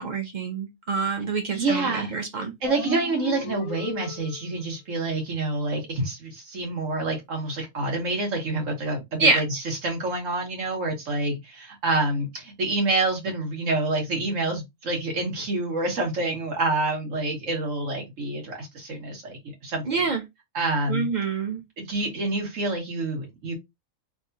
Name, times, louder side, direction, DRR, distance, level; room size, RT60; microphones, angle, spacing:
voice 1, 0.0-2.5 9.2-9.4 19.9-20.2 20.9-21.6, right 4 dB, 40° right, 0.8 m, -26 dB
voice 2, 1.5-2.1 2.6-19.8 20.5-21.1 21.8-23.5, right 2 dB, 75° right, 1.6 m, -27 dB
sound 1, 2.6-4.6, left 5 dB, 85° left, 1.0 m, -35 dB
3.4 x 2.4 x 2.7 m
omnidirectional pair, 1.3 m